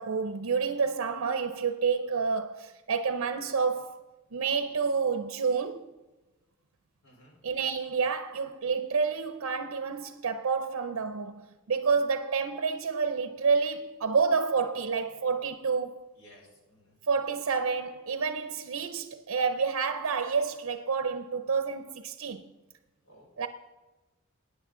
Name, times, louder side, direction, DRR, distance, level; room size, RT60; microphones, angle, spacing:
voice 1, 0.0-4.0 4.3-5.9 7.4-16.0 17.1-22.5 23.4-23.5, right 5 dB, 90° right, 0.6 m, -29 dB
voice 2, 7.0-7.3 16.2-16.9 23.1-23.3, equal, 90° left, 4.3 m, -56 dB
15.0 x 9.8 x 3.7 m
head